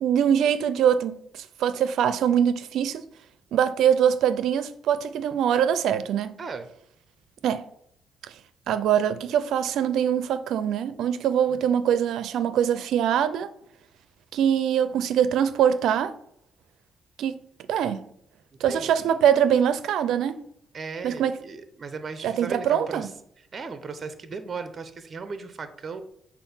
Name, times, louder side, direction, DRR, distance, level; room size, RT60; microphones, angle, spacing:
voice 1, 0.0-3.0 3.5-6.4 7.4-7.7 8.7-13.5 14.3-16.2 17.2-17.4 17.7-18.1 18.6-20.4 21.0-21.4 22.2-23.1, right 9 dB, 80° right, 0.5 m, -23 dB
voice 2, 18.5-19.2 20.7-23.1 23.5-26.0, right 4 dB, 40° right, 0.7 m, -37 dB
7.0 x 2.5 x 5.5 m
cardioid pair, 90°, 0 cm